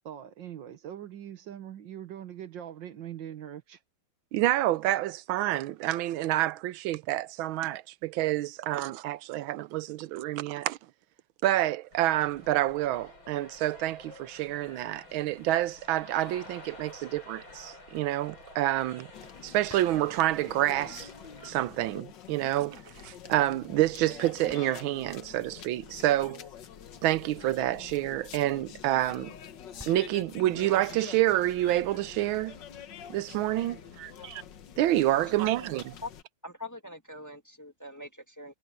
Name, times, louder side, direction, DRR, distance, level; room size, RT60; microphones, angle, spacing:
voice 1, 0.1-3.8, right 10 dB, 70° right, 1.8 m, -42 dB
voice 2, 4.3-10.8 11.4-19.1 19.4-21.1 21.4-26.4 27.0-29.3 29.9-32.6 33.1-34.4 34.8-35.9, right 15 dB, 85° right, 1.4 m, -28 dB
sound 1, 11.9-21.5, left 2 dB, 80° left, 7.5 m, -50 dB
sound 2, 15.2-15.4 19.7-22.1 24.5-27.0 29.8-32.9, equal, 5° right, 5.8 m, -57 dB
sound 3, 19.1-36.2, left 9 dB, 65° left, 1.7 m, -46 dB
voice 3, 36.4-38.5, left 2 dB, 10° left, 1.7 m, -43 dB
omnidirectional pair, 2.2 m